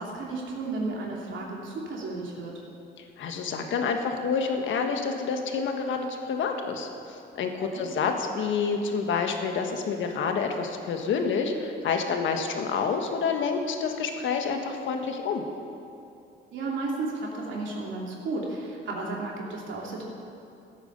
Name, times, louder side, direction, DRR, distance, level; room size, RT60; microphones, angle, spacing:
voice 1, 0.0-2.6 7.7-7.8 16.5-20.1, right 3 dB, 70° right, -2 dB, 3.0 m, -33 dB
voice 2, 3.2-6.9 7.3-15.4, left 5 dB, 75° left, 4 dB, 1.5 m, -28 dB
15.0 x 9.1 x 6.8 m, 2.7 s
cardioid pair, 90°, 20 cm